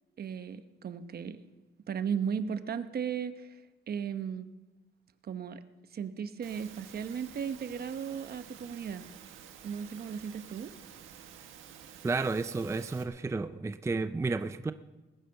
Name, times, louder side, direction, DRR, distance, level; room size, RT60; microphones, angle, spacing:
voice 1, 0.2-1.4 1.9-3.6 3.9-4.5 5.2-5.6 5.9-9.1 9.6-10.7, right 7 dB, 50° right, 11 dB, 1.0 m, -36 dB
Engine / Mechanisms, 6.4-13.0, right 8 dB, 85° right, 1.6 m, -51 dB
voice 2, 12.0-14.7, right 3 dB, 15° right, 11 dB, 0.5 m, -32 dB
20.5 x 9.4 x 5.8 m, 1.1 s
cardioid pair, 90°, 20 cm